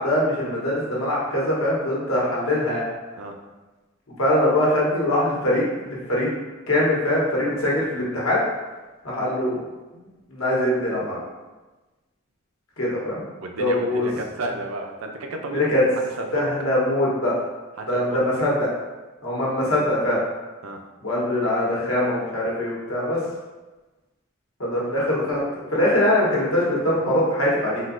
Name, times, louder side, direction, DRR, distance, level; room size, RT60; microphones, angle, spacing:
voice 1, 0.0-2.8 4.2-6.3 6.7-8.4 9.0-9.6 9.9-10.0 10.3-11.2 12.8-13.3 13.6-14.1 15.5-15.8 16.3-17.3 17.9-18.7 19.2-20.2 21.0-23.2 24.6-27.8, left 1 dB, 85° left, -5 dB, 1.0 m, -22 dB
voice 2, 13.4-16.5 17.8-18.3 20.6-20.8, right 2 dB, 75° right, 3 dB, 0.5 m, -32 dB
3.7 x 2.7 x 2.5 m, 1.2 s
head